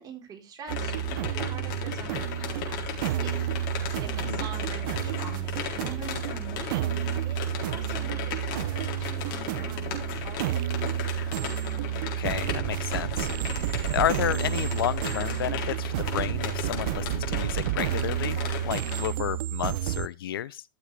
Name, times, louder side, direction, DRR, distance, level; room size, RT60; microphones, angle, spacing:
voice 1, 0.0-3.3 3.6-11.3, right 6 dB, 35° right, 4.0 m, -45 dB
sound 1, 0.7-19.1, left 7 dB, 65° left, 4.0 m, -36 dB
Creepy drum loop, 0.7-20.1, right 13 dB, 70° right, 0.7 m, -30 dB
voice 2, 12.2-18.4 18.6-20.6, left 12 dB, 90° left, 0.6 m, -31 dB
13.5 x 7.4 x 3.3 m
hypercardioid pair, 115°, 12 cm